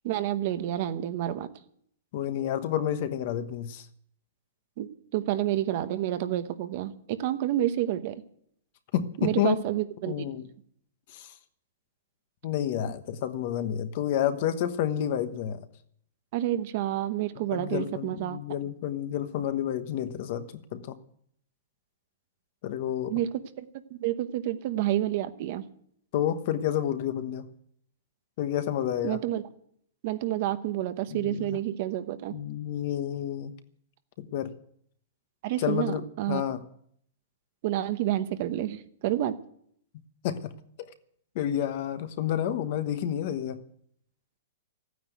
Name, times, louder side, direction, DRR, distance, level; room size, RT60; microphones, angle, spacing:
voice 1, 0.0-1.5 4.8-8.2 9.2-10.3 16.3-18.4 23.1-23.3 23.6-23.7 23.9-25.6 29.0-29.4 30.0-32.3 35.4-36.4 37.6-39.3, right 13 dB, 35° right, 11 dB, 0.9 m, -29 dB
voice 2, 2.1-3.9 8.9-9.5 10.1-10.5 11.1-11.3 12.4-15.6 17.5-21.0 22.6-23.2 26.1-27.5 28.4-29.2 31.1-31.6 32.3-33.5 34.2-34.5 35.6-36.6 40.2-40.9 41.3-43.6, left 10 dB, 40° left, 11 dB, 1.1 m, -30 dB
14.0 x 9.4 x 9.2 m, 0.67 s
hypercardioid pair, 175°, 0 cm